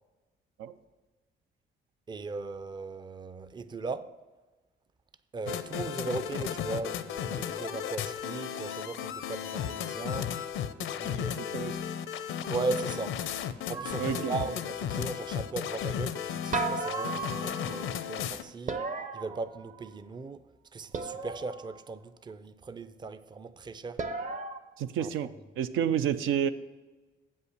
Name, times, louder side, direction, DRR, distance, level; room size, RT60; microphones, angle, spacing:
voice 1, 2.1-4.1 5.3-10.4 10.8-11.7 12.5-13.2 13.7-18.9 19.1-20.4 20.7-24.1 25.0-25.1, right 3 dB, 20° right, 0.4 m, -38 dB
sound 1, 5.5-18.4, left 9 dB, 80° left, 0.6 m, -34 dB
voice 2, 11.4-11.8 14.0-14.3 24.8-25.3 25.6-26.5, right 9 dB, 85° right, 0.5 m, -29 dB
sound 2, 13.7-14.6 16.5-17.9 18.7-20.0 20.9-21.8 24.0-24.6, right 3 dB, 40° right, 0.8 m, -35 dB
7.7 x 5.6 x 6.5 m
cardioid pair, 90°, 20 cm